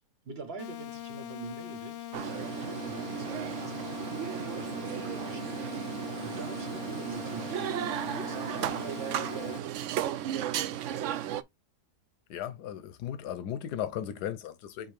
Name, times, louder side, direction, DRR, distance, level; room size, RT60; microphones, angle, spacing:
voice 1, 0.2-4.2 4.6-5.7 6.2-9.9, right 4 dB, 40° right, 1.4 m, -45 dB
sound 1, 0.6-9.6, left 13 dB, 65° left, 0.7 m, -41 dB
sound 2, 2.1-11.4, right 11 dB, 70° right, 0.7 m, -35 dB
voice 2, 12.3-14.9, left 10 dB, 85° left, 1.3 m, -36 dB
5.8 x 4.9 x 3.3 m
omnidirectional pair, 1.7 m